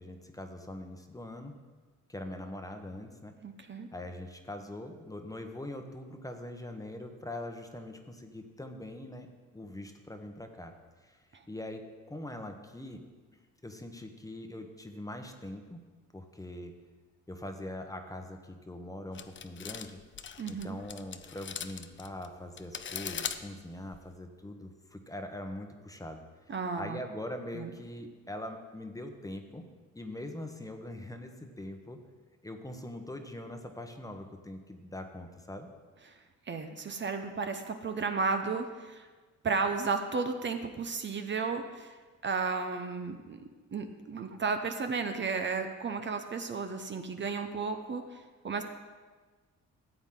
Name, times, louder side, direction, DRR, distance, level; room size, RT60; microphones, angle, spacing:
voice 1, 0.0-1.6 2.1-3.3 3.9-9.3 9.5-10.7 11.0-11.2 11.5-11.8 12.1-13.0 13.6-15.8 16.1-16.7 17.3-20.0 20.5-26.2 26.8-29.7 29.9-32.0 32.4-35.7, left 1 dB, 10° left, 5 dB, 1.0 m, -42 dB
voice 2, 3.4-3.9 20.4-20.8 26.5-27.0 27.5-27.7 36.1-36.2 36.5-39.1 39.4-42.0 42.2-43.4 43.7-48.6, right 4 dB, 40° right, 6 dB, 0.8 m, -33 dB
sound 1, 19.1-24.1, left 8 dB, 40° left, 0.6 m, -40 dB
13.5 x 8.1 x 3.8 m, 1.3 s
cardioid pair, 90°, 30 cm